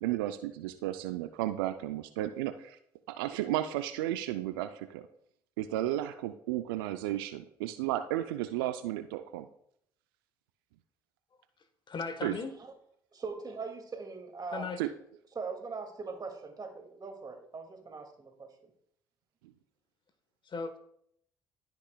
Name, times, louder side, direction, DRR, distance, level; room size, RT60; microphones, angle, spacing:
voice 1, 0.0-2.8 3.1-5.1 5.6-9.5 12.2-12.3 14.8-14.9, right 13 dB, 85° right, 10 dB, 0.4 m, -33 dB
voice 2, 11.9-12.6 14.5-14.8 20.4-20.8, left 4 dB, 45° left, 9 dB, 1.2 m, -37 dB
voice 3, 13.1-14.8 15.3-18.7, right 4 dB, 35° right, 4 dB, 2.1 m, -41 dB
15.0 x 6.0 x 2.2 m, 0.70 s
hypercardioid pair, 55°, 12 cm